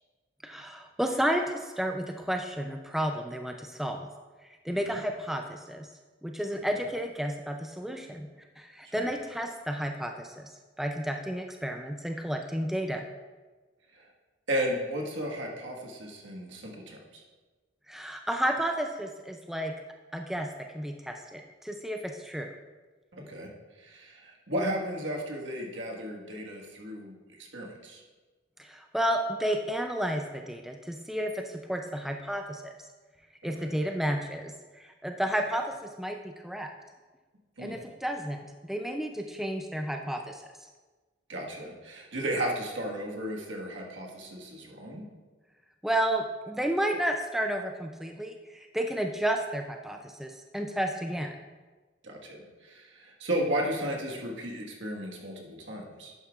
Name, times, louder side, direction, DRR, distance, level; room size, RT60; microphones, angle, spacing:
voice 1, 0.4-4.1 4.6-5.9 6.2-8.3 8.6-10.5 10.8-13.1 17.9-19.7 20.1-22.5 28.6-32.7 33.4-36.7 37.6-40.4 45.8-51.3, right 1 dB, ahead, 3 dB, 0.4 m, -32 dB
voice 2, 4.7-5.0 6.7-6.8 8.8-9.1 13.9-14.1 14.5-17.2 23.1-23.5 23.8-28.0 33.4-33.8 37.6-37.8 41.3-45.1 52.0-56.1, right 1 dB, 75° right, -1 dB, 1.6 m, -34 dB
11.0 x 8.9 x 2.4 m, 1.3 s
head